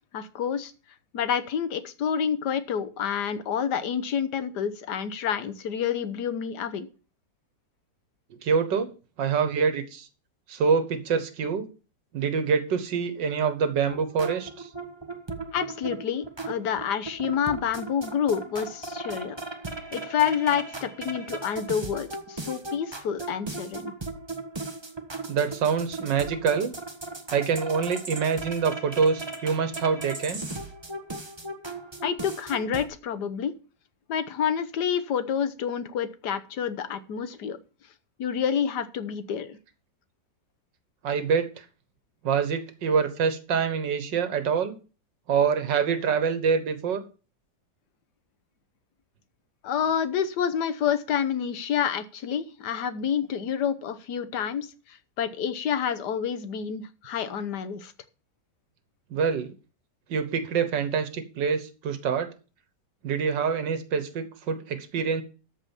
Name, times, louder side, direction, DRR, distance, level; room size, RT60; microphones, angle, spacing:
voice 1, 0.1-0.7 1.1-6.9 15.5-19.4 19.9-23.9 32.0-33.5 34.1-37.6 38.2-39.6 49.6-57.9, left 8 dB, 70° left, 12 dB, 1.6 m, -28 dB
voice 2, 8.4-8.9 9.2-10.1 10.5-11.7 12.1-14.7 25.3-26.7 27.3-30.4 41.0-41.5 42.2-44.8 45.3-47.0 59.1-59.5 60.1-62.3 63.0-65.2, right 6 dB, 85° right, 10 dB, 1.9 m, -25 dB
sound 1, 13.9-32.9, right 2 dB, 15° right, 1.1 m, -37 dB
13.5 x 4.9 x 7.1 m, 0.36 s
omnidirectional pair, 1.9 m